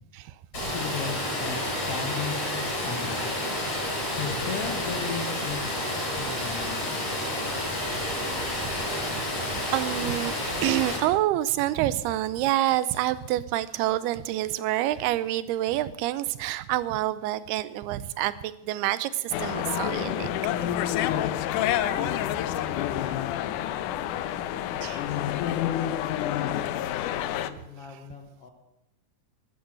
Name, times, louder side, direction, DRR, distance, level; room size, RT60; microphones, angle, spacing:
Water, 0.5-11.0, left 1 dB, 40° left, 6.3 m, -30 dB
voice 1, 0.6-1.6 1.9-3.5 3.8-5.8 6.1-7.1 21.9-24.0 27.0-28.5, left 5 dB, 60° left, 3 dB, 1.6 m, -37 dB
voice 2, 9.6-10.3 10.6-18.3 18.6-20.3 24.8-25.1, right 14 dB, 85° right, 16 dB, 2.7 m, -27 dB
sound 1, 19.3-27.5, left 11 dB, 85° left, 1.8 m, -28 dB
13.0 x 11.0 x 7.7 m, 0.87 s
omnidirectional pair, 4.5 m